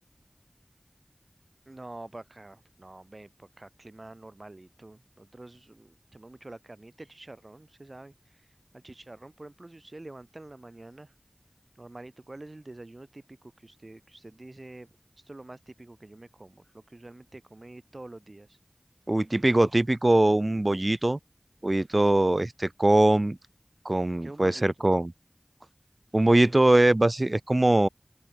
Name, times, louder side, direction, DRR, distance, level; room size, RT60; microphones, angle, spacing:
voice 1, 1.7-8.4 8.7-11.1 11.7-14.9 15.2-18.6 24.2-24.9, right 2 dB, 65° right, 2.9 m, -47 dB
voice 2, 19.1-21.2 21.6-23.4 23.8-25.1 26.1-27.9, right 1 dB, 45° right, 1.0 m, -22 dB
open air
wide cardioid pair, 45°, 0 cm